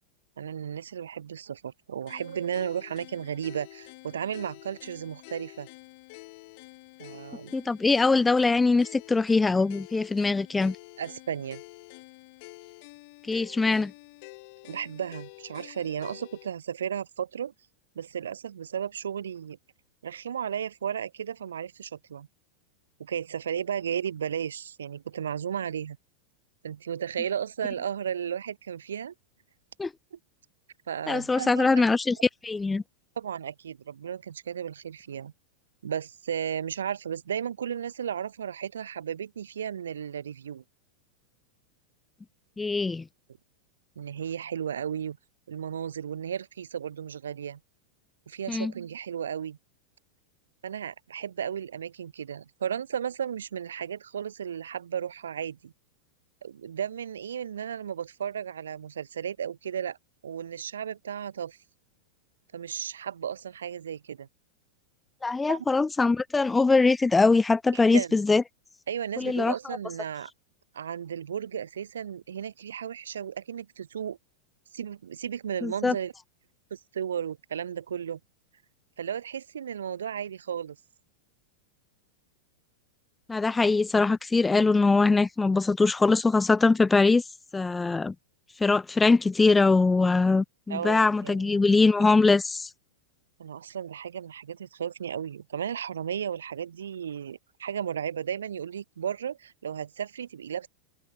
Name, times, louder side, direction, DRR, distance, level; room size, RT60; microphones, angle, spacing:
voice 1, 0.4-5.7 7.0-7.5 11.0-11.6 14.6-17.5 17.9-19.6 20.0-22.3 23.0-26.0 26.6-29.1 30.1-30.2 30.9-31.8 33.2-35.3 35.8-40.6 44.0-45.2 45.5-47.6 48.3-49.6 50.6-55.7 56.4-60.0 60.2-61.6 62.5-64.3 65.5-65.6 67.9-68.1 68.9-70.3 70.7-74.2 74.7-76.1 76.7-78.2 79.0-80.8 90.7-91.7 93.4-100.7, right 8 dB, 65° right, 1.1 m, -34 dB
sound 1, 2.1-16.5, left 28 dB, 45° left, 2.6 m, -48 dB
voice 2, 7.5-10.8 13.3-13.9 29.8-29.9 31.1-32.2 32.4-32.8 42.6-43.0 48.5-48.7 65.2-68.4 69.2-69.5 75.6-75.9 83.3-87.2 87.5-88.1 88.6-92.7, left 3 dB, 10° left, 0.4 m, -22 dB
open air
figure-of-eight pair, 90°, 0 cm